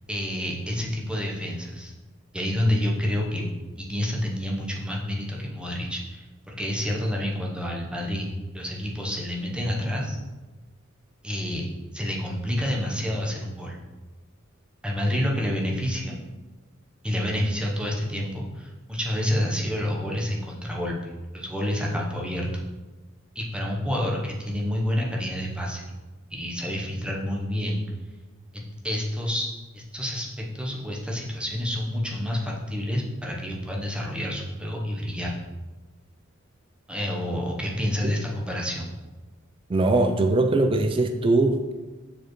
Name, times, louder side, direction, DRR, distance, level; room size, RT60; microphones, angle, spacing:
voice 1, 0.1-1.9 2.3-3.4 3.8-8.3 8.5-10.2 11.2-11.7 11.9-13.8 14.8-16.2 17.0-22.6 23.3-25.8 26.3-27.8 28.5-29.5 29.7-35.4 36.9-38.9, left 1 dB, 5° right, -2 dB, 0.8 m, -28 dB
voice 2, 39.7-41.7, right 2 dB, 25° right, 7 dB, 0.3 m, -21 dB
6.8 x 4.8 x 3.1 m, 1.2 s
head